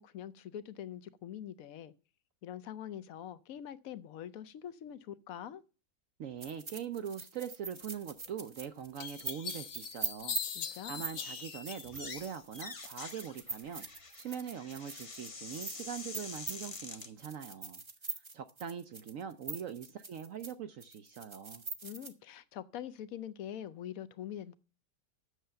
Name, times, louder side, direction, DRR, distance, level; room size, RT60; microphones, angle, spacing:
voice 1, 0.0-1.9 2.4-5.6 10.5-11.0 21.8-24.5, left 10 dB, 65° left, 0.9 m, -44 dB
voice 2, 6.2-17.8 18.1-21.6, right 8 dB, 65° right, 0.8 m, -42 dB
sound 1, 6.4-20.5 20.8-22.1, right 3 dB, 30° right, 0.6 m, -43 dB
sound 2, 8.3-8.4 9.0-12.7 13.0-13.7, left 7 dB, 85° left, 1.6 m, -42 dB
sound 3, 11.8-12.3 12.5-17.1, left 3 dB, 30° left, 0.6 m, -46 dB
8.0 x 6.7 x 7.5 m
omnidirectional pair, 1.9 m